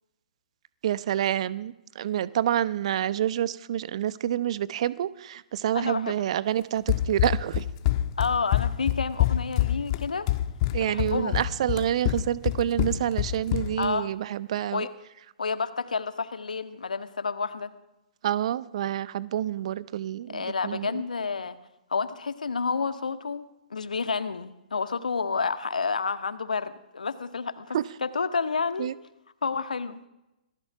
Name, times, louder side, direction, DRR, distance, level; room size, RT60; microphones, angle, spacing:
voice 1, 0.8-7.6 10.7-14.9 18.2-21.0 27.7-27.8 28.8-28.9, right 11 dB, 45° right, 18 dB, 0.9 m, -28 dB
voice 2, 5.7-6.1 8.2-10.3 10.8-11.4 13.8-14.1 14.7-14.9 15.4-17.7 20.3-21.6 21.9-23.4 23.7-28.9 29.4-30.0, left 5 dB, 70° left, 11 dB, 1.6 m, -30 dB
Run, 6.9-13.9, left 14 dB, 35° left, 1.7 m, -26 dB
26.5 x 18.5 x 6.0 m, 0.94 s
figure-of-eight pair, 120°, 4 cm